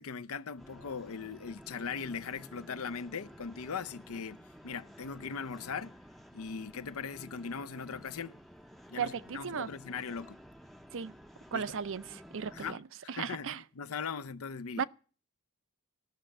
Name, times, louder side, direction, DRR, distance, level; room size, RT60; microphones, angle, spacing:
voice 1, 0.0-5.9 6.3-8.3 8.9-10.4 11.5-11.7 12.5-14.8, left 6 dB, 70° left, 0.6 m, -40 dB
sound 1, 0.6-12.7, equal, ahead, 0.6 m, -53 dB
voice 2, 9.0-9.7 10.9-11.1 11.5-12.8 13.1-13.6 14.8-14.9, right 6 dB, 65° right, 0.6 m, -35 dB
14.5 x 6.5 x 10.0 m
head